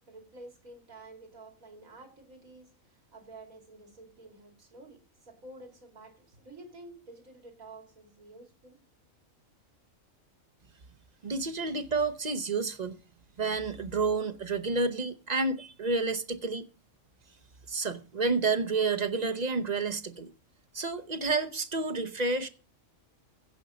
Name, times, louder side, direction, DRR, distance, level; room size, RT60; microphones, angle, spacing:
voice 1, 0.1-2.7 3.1-8.8 11.6-11.7, right 2 dB, 85° right, 3.1 m, -50 dB
voice 2, 11.2-13.0 13.4-16.7 17.7-20.3 20.7-22.5, right 3 dB, 40° right, 0.8 m, -30 dB
16.0 x 5.4 x 5.0 m
omnidirectional pair, 1.4 m